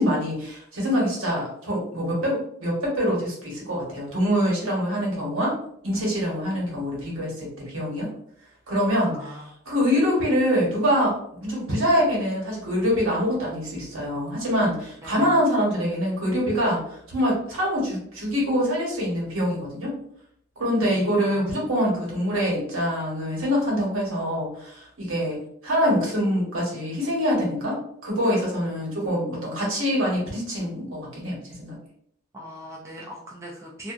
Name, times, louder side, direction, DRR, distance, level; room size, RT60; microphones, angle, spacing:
voice 1, 0.0-5.6 5.8-8.1 8.7-9.2 9.7-19.9 20.6-31.8, equal, 70° right, -4 dB, 1.2 m, -25 dB
voice 2, 8.9-9.5 15.0-15.3 20.8-21.7 32.3-33.9, equal, 15° right, -3 dB, 0.3 m, -41 dB
2.4 x 2.4 x 2.4 m, 0.69 s
head